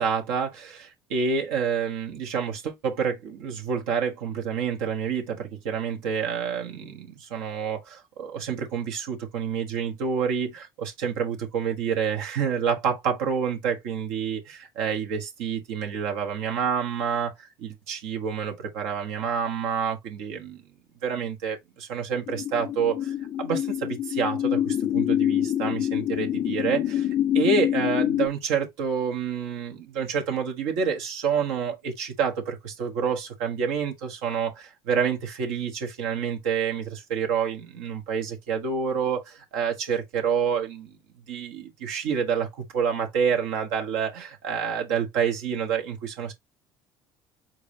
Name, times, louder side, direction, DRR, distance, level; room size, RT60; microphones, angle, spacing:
voice 1, 0.0-20.6 21.0-27.1 27.3-40.9 41.3-46.3, right 6 dB, 75° right, 1.3 m, -28 dB
sound 1, 22.3-28.3, left 11 dB, 45° left, 0.5 m, -26 dB
4.7 x 3.7 x 2.7 m
hypercardioid pair, 70°, 12 cm